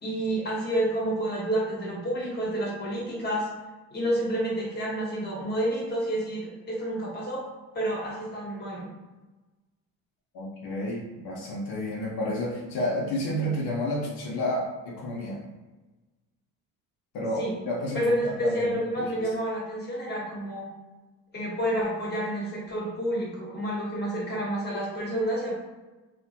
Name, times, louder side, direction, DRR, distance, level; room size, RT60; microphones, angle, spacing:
voice 1, 0.0-3.5 3.9-7.4 7.7-8.9 17.4-17.6 17.9-20.7 21.3-25.6, right 1 dB, 30° left, -4 dB, 1.2 m, -29 dB
voice 2, 10.3-15.4 17.1-19.3, left 1 dB, 75° left, -3 dB, 0.7 m, -31 dB
2.9 x 2.1 x 2.8 m, 1.2 s
cardioid pair, 105°, 36 cm